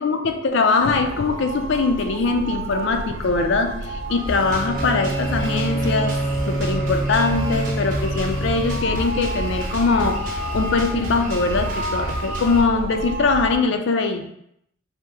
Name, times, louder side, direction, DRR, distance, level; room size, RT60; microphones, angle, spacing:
voice 1, 0.0-6.2 6.5-14.3, left 4 dB, 60° left, 6 dB, 0.4 m, -22 dB
sound 1, 0.8-13.6, right 1 dB, 85° right, 0.5 m, -31 dB
Bowed string instrument, 4.3-9.1, right 2 dB, ahead, 0.8 m, -27 dB
Drum kit, 4.3-12.6, equal, 40° right, 1.0 m, -32 dB
4.3 x 2.0 x 3.4 m, 0.75 s
head